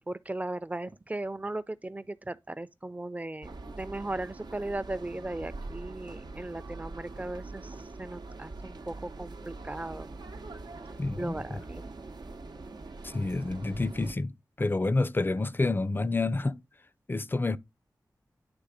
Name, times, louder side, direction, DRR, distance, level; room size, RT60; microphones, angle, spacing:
voice 1, 0.1-10.1 11.2-11.8, right 2 dB, 20° right, 0.5 m, -37 dB
sound 1, 3.4-14.1, right 3 dB, 80° right, 0.9 m, -43 dB
voice 2, 11.0-11.6 13.0-14.3 14.6-16.6 17.1-17.6, left 2 dB, 30° left, 0.4 m, -28 dB
9.8 x 3.4 x 4.9 m
wide cardioid pair, 55°, 7 cm